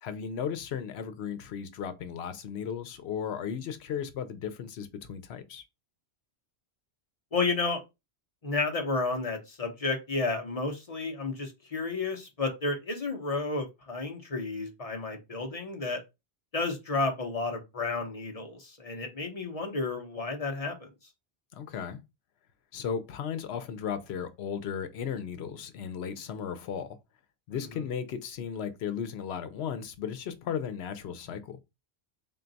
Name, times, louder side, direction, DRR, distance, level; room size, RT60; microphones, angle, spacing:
voice 1, 0.0-5.6 21.5-22.0 22.7-27.0 27.5-31.6, left 7 dB, 85° left, 0.9 m, -35 dB
voice 2, 7.3-7.8 8.4-16.0 16.5-20.9, left 3 dB, 40° left, 0.8 m, -31 dB
3.8 x 2.3 x 3.9 m
omnidirectional pair, 1.1 m